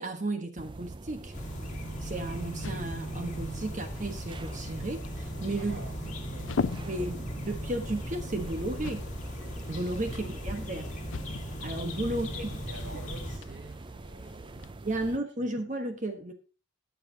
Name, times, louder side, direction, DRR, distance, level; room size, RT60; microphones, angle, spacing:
voice 1, 0.0-1.3 2.0-5.8 6.8-9.1 9.7-10.9 11.6-13.0 14.8-16.3, right 1 dB, 40° right, 1.2 m, -34 dB
sound 1, 0.6-15.2, right 2 dB, 25° right, 0.4 m, -44 dB
sound 2, 1.3-13.4, equal, 40° left, 2.3 m, -38 dB
sound 3, 2.4-14.7, left 5 dB, 75° left, 0.5 m, -42 dB
voice 2, 5.6-6.5 6.8-7.4 10.0-10.2 12.1-14.8 15.4-15.5, right 2 dB, 65° right, 1.5 m, -48 dB
20.5 x 6.8 x 2.8 m
head